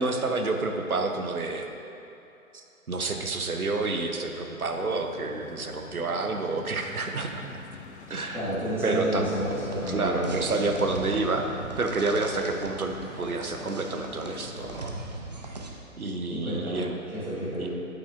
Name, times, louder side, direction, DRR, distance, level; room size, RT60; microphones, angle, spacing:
voice 1, 0.0-1.7 2.5-7.6 8.1-8.5 8.8-9.3 9.9-15.0 16.0-17.0 17.6-17.7, right 3 dB, 80° right, 4 dB, 0.9 m, -29 dB
sound 1, 4.6-14.9, left 5 dB, 50° left, 0.5 m, -45 dB
voice 2, 8.3-10.3 10.6-10.7 16.0-16.8 17.1-17.7, equal, 5° right, -11 dB, 1.3 m, -31 dB
sound 2, 9.0-15.7, right 2 dB, 30° right, 0.5 m, -39 dB
9.4 x 8.2 x 2.5 m, 2.9 s
figure-of-eight pair, 130°, 43 cm